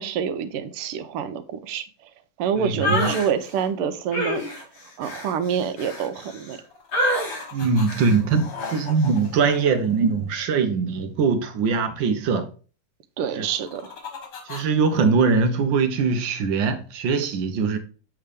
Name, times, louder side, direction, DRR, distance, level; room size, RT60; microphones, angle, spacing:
voice 1, 0.0-2.1 2.4-4.7 5.0-6.6 13.2-14.0, right 7 dB, 85° right, 1.6 m, -27 dB
voice 2, 2.6-3.0 7.5-12.5 13.4-13.5 14.5-17.8, right 5 dB, 65° right, 1.4 m, -22 dB
sound 1, 2.8-3.3 4.1-6.6 6.9-7.5 7.9-8.2 8.6-8.9, left 1 dB, 65° left, 2.6 m, -27 dB
sound 2, 6.7-7.9 8.1-10.6 13.3-15.1, left 5 dB, 85° left, 2.6 m, -39 dB
7.4 x 3.5 x 5.0 m
omnidirectional pair, 2.4 m